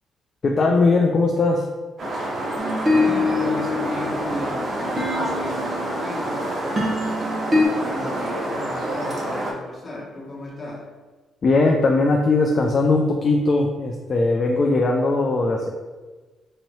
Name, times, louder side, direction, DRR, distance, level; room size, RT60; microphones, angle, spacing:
voice 1, 0.4-1.6 11.4-15.7, left 3 dB, 45° left, 1 dB, 0.4 m, -19 dB
sound 1, 2.0-9.5, right 1 dB, 50° right, 0.8 m, -28 dB
voice 2, 2.4-7.0 7.5-10.9, left 1 dB, 30° left, -5 dB, 1.4 m, -35 dB
sound 2, 2.6-7.6, left 2 dB, 35° right, 1.1 m, -25 dB
4.0 x 2.7 x 3.1 m, 1.3 s
cardioid pair, 90°, 0 cm